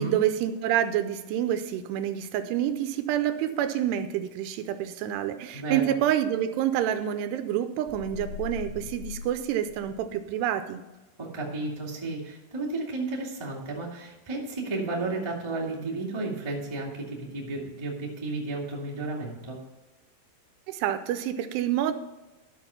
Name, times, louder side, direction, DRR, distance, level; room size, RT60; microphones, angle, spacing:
voice 1, 0.0-10.8 20.7-21.9, right 10 dB, 85° right, 10 dB, 2.7 m, -28 dB
voice 2, 5.5-6.0 11.2-19.6, right 2 dB, 35° right, -3 dB, 0.4 m, -33 dB
sound 1, 7.9-10.3, left 6 dB, 90° left, 2.1 m, -40 dB
13.0 x 6.2 x 5.6 m, 1.1 s
omnidirectional pair, 5.0 m